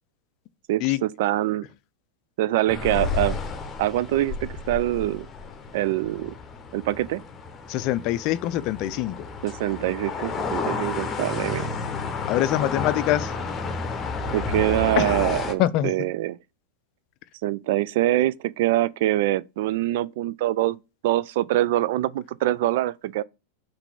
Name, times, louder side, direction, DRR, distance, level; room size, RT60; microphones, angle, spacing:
voice 1, 0.7-1.7 2.4-3.4 3.8-5.3 5.7-6.3 6.7-7.2 9.4-11.7 14.3-16.4 17.4-20.8 21.0-23.2, right 15 dB, 50° right, 0.3 m, -24 dB
sound 1, 2.7-15.5, left 4 dB, 20° left, 1.0 m, -31 dB
voice 2, 7.7-9.3 12.3-13.3 15.0-15.2 15.6-15.9 18.1-18.2, left 14 dB, 40° left, 0.5 m, -24 dB
5.8 x 3.3 x 5.7 m
figure-of-eight pair, 90°, 0 cm